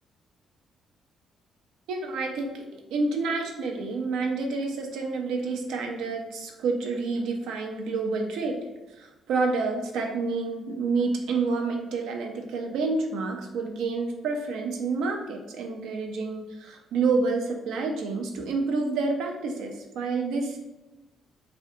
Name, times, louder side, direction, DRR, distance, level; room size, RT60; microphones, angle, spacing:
voice 1, 1.9-8.6 8.9-20.6, right 3 dB, 85° right, 3 dB, 0.4 m, -29 dB
2.5 x 2.1 x 2.6 m, 1.0 s
cardioid pair, 105°, 0 cm